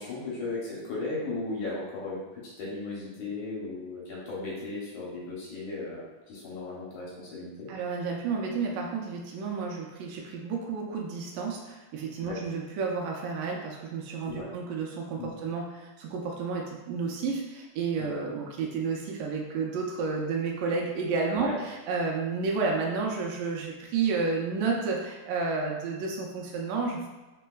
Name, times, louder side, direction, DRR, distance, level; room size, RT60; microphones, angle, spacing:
voice 1, 0.0-7.7 12.2-12.4 14.3-14.5 15.2-15.3 18.0-18.1 21.4-21.5, left 3 dB, 70° left, -6 dB, 2.0 m, -36 dB
voice 2, 7.7-27.1, right 4 dB, 80° right, -1 dB, 2.1 m, -31 dB
4.5 x 4.1 x 2.3 m, 1.1 s
omnidirectional pair, 4.0 m